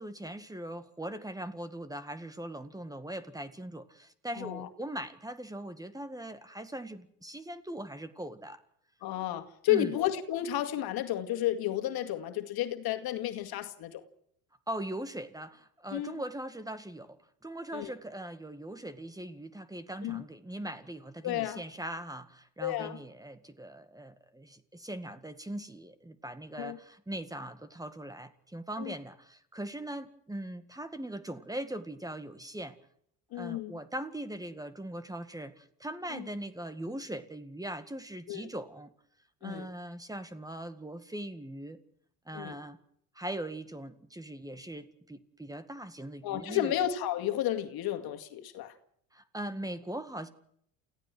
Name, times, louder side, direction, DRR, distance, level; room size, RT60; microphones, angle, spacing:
voice 1, 0.0-8.6 9.7-9.9 14.7-17.2 17.4-32.8 33.3-38.9 39.4-41.8 42.3-42.8 43.1-46.7 49.1-50.3, right 1 dB, 10° right, 1.9 m, -40 dB
voice 2, 4.3-4.7 9.0-14.0 15.9-16.2 17.7-17.9 20.0-20.2 21.2-21.6 22.6-23.0 26.6-26.8 28.8-28.9 33.3-33.7 36.1-36.3 38.3-38.5 39.4-39.7 42.3-42.5 46.2-48.8, left 12 dB, 65° left, 2.2 m, -32 dB
29.0 x 16.0 x 6.2 m
supercardioid pair, 85°, 40 cm